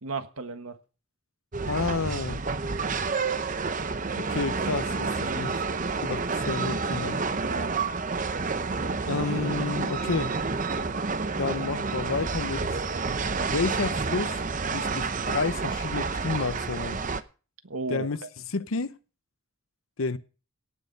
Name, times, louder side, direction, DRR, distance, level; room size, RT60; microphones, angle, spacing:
voice 1, 0.0-0.8 5.2-5.5 7.4-7.9 17.6-18.3, right 4 dB, 90° right, 1.4 m, -35 dB
sound 1, 1.5-17.2, right 4 dB, 35° right, 0.7 m, -29 dB
voice 2, 1.7-2.4 4.2-5.6 6.0-7.2 9.1-10.4 11.4-12.8 13.5-14.4 14.7-17.0 17.9-18.2 18.5-19.0 20.0-20.2, left 4 dB, 75° left, 0.8 m, -30 dB
17.5 x 6.6 x 5.3 m
head